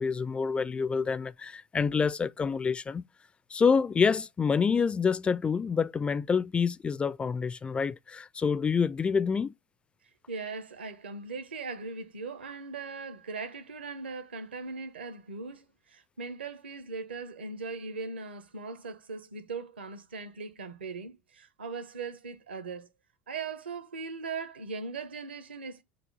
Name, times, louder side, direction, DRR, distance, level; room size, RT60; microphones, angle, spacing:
voice 1, 0.0-3.0 3.5-9.5, left 5 dB, 20° left, 0.3 m, -27 dB
voice 2, 10.3-22.9 23.3-25.8, right 4 dB, 75° right, 1.3 m, -39 dB
6.9 x 2.9 x 5.4 m
figure-of-eight pair, 75°, 6 cm